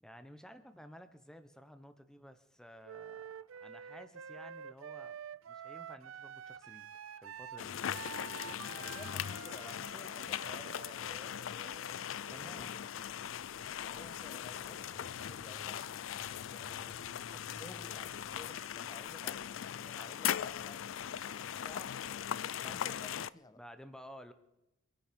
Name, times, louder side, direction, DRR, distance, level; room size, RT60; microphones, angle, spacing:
voice 1, 0.0-5.2 5.5-6.9 7.2-7.8 8.5-8.8 12.3-13.1 23.6-24.3, equal, 5° left, 1.0 m, -54 dB
Wind instrument woodwind instrument, 2.8-12.6, right 8 dB, 85° right, 0.5 m, -48 dB
sound 1, 7.6-23.3, left 9 dB, 75° left, 0.4 m, -40 dB
voice 2, 8.7-11.8 12.5-12.8 13.7-17.0 17.3-22.0 22.6-23.6, left 2 dB, 20° left, 0.6 m, -54 dB
sound 2, 12.9-20.5, left 1 dB, 40° right, 2.1 m, -60 dB
25.5 x 9.3 x 5.3 m
head